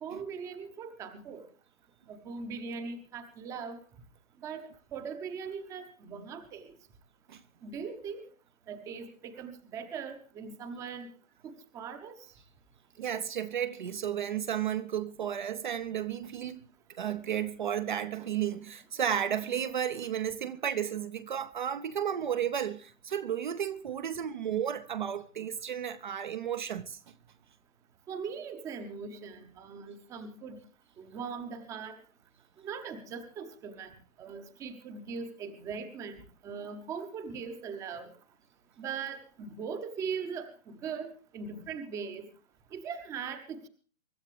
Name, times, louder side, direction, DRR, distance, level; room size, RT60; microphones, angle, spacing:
voice 1, 0.0-1.4 2.1-3.8 4.4-6.7 7.6-8.2 8.7-11.1 11.4-12.1 28.1-30.6 31.0-32.0 32.6-33.9 34.2-36.2 36.4-38.1 38.8-42.2 42.7-43.7, right 6 dB, 10° right, 0.9 m, -40 dB
voice 2, 13.0-16.6 16.9-27.0, right 9 dB, 40° right, 0.8 m, -33 dB
24.0 x 12.5 x 3.3 m
figure-of-eight pair, 145°, 39 cm